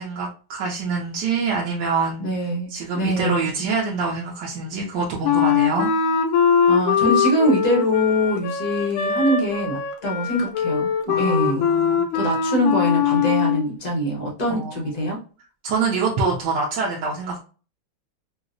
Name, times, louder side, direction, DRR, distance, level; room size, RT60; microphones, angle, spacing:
voice 1, 0.0-2.3 2.7-5.9 11.1-12.0 14.5-15.1 15.6-17.4, right 4 dB, 70° right, -3 dB, 1.1 m, -25 dB
voice 2, 2.2-3.5 6.7-10.9 11.2-11.7 12.1-15.2, equal, 55° left, -2 dB, 0.4 m, -23 dB
Wind instrument woodwind instrument, 5.2-13.7, left 7 dB, 80° left, 1.3 m, -21 dB
4.5 x 2.0 x 2.5 m, 0.37 s
omnidirectional pair, 2.2 m